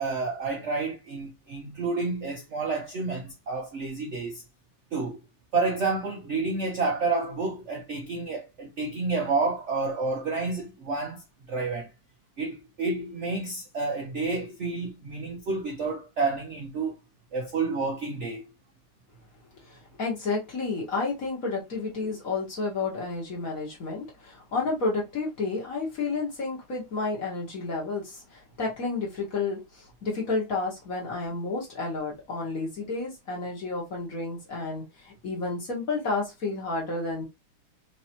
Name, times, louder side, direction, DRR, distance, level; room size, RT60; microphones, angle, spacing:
voice 1, 0.0-4.4 4.9-5.2 5.5-11.9 12.4-17.0 17.3-18.4, right 3 dB, 65° right, 0.7 m, -29 dB
voice 2, 19.7-37.2, left 3 dB, 45° left, 1.9 m, -31 dB
4.9 x 3.0 x 2.8 m
omnidirectional pair, 2.4 m